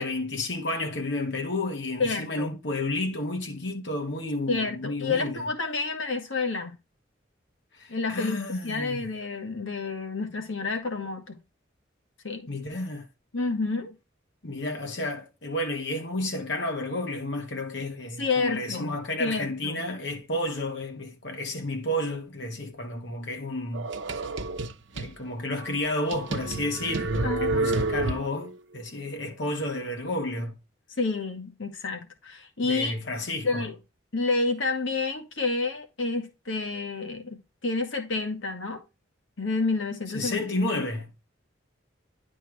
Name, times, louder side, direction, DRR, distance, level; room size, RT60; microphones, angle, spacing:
voice 1, 0.0-5.5 7.7-9.1 12.5-13.1 14.4-23.9 24.9-30.6 32.6-33.7 40.1-41.1, left 1 dB, 65° left, 1.4 m, -31 dB
voice 2, 2.0-2.5 4.5-6.8 7.9-11.4 12.2-12.5 13.3-14.0 18.2-19.9 27.2-27.5 31.0-32.9 33.4-33.7 34.1-38.8 39.4-40.4, left 3 dB, 85° left, 1.5 m, -29 dB
sound 1, 23.7-25.1 25.6-25.7 26.1-28.5, right 2 dB, 65° right, 0.8 m, -29 dB
10.5 x 4.4 x 3.2 m
head